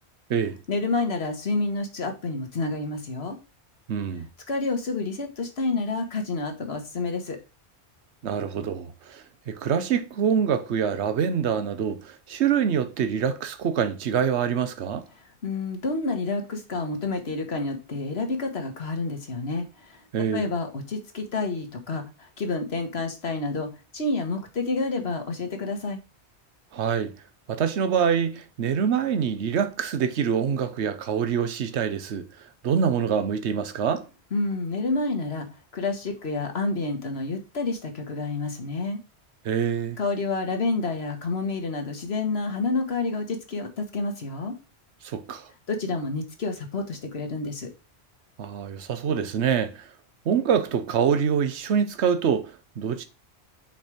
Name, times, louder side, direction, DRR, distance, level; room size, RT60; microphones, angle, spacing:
voice 1, 0.7-3.4 4.5-7.4 15.4-19.9 20.3-22.0 22.4-26.0 34.3-35.5 35.7-39.0 40.0-44.6 45.7-47.7, left 3 dB, 70° left, 1.7 m, -29 dB
voice 2, 3.9-4.3 8.2-15.0 20.1-20.5 26.7-27.1 27.5-32.3 32.6-34.0 39.4-40.0 45.0-45.4 48.4-49.8 50.3-53.0, right 7 dB, 85° right, 1.1 m, -25 dB
5.8 x 4.4 x 4.8 m
omnidirectional pair, 1.1 m